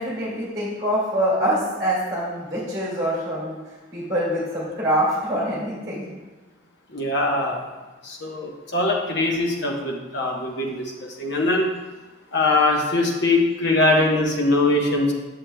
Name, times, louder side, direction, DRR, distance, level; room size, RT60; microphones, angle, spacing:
voice 1, 0.0-3.6 3.9-6.1, equal, 20° right, -7 dB, 2.0 m, -25 dB
voice 2, 6.9-7.6 8.0-11.7 12.3-15.1, left 2 dB, 55° left, 0 dB, 1.0 m, -22 dB
7.5 x 6.7 x 2.2 m, 1.2 s
head